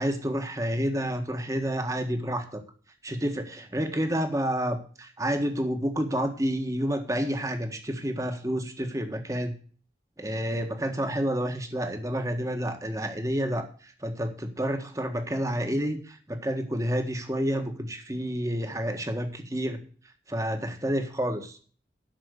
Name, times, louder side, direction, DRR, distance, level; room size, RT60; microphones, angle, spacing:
voice 1, 0.0-2.6 3.0-9.5 10.2-19.8 20.3-21.6, equal, 20° right, 6 dB, 1.5 m, -29 dB
12.0 x 6.2 x 6.6 m, 0.42 s
head